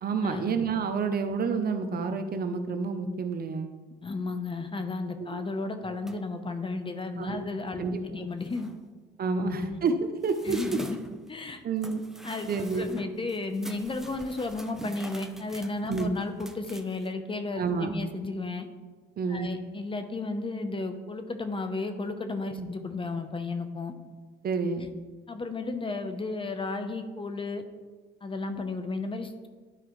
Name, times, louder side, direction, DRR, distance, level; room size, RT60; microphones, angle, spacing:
voice 1, 0.0-3.7 5.2-5.4 7.2-7.4 7.8-8.3 9.2-10.6 11.6-12.0 12.5-12.9 15.9-16.1 17.6-18.0 19.2-19.5 22.6-22.7 24.4-24.9, right 4 dB, 50° right, 8 dB, 0.7 m, -29 dB
voice 2, 4.0-8.7 9.4-9.8 10.5-11.0 11.3-11.6 12.2-18.7 19.3-23.9 25.3-27.6 28.2-29.5, left 3 dB, 25° left, 8 dB, 0.7 m, -33 dB
sound 1, 6.1-6.4 8.0-8.1 8.4-8.9 9.6-17.1, right 1 dB, ahead, 0.5 m, -46 dB
11.5 x 4.8 x 3.1 m, 1.4 s
cardioid pair, 90°, 20 cm